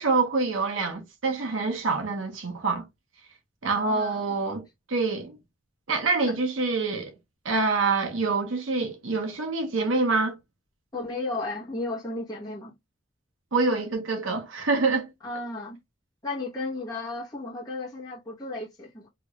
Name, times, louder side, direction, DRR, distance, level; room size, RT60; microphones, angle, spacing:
voice 1, 0.0-2.8 3.6-4.6 4.9-5.4 5.9-7.1 7.4-10.4 13.5-15.1, right 3 dB, 85° right, 0.9 m, -26 dB
voice 2, 3.7-4.2 6.2-6.3 10.9-12.7 15.2-15.8 16.2-19.1, left 2 dB, 20° left, 1.0 m, -34 dB
3.0 x 2.4 x 3.0 m
head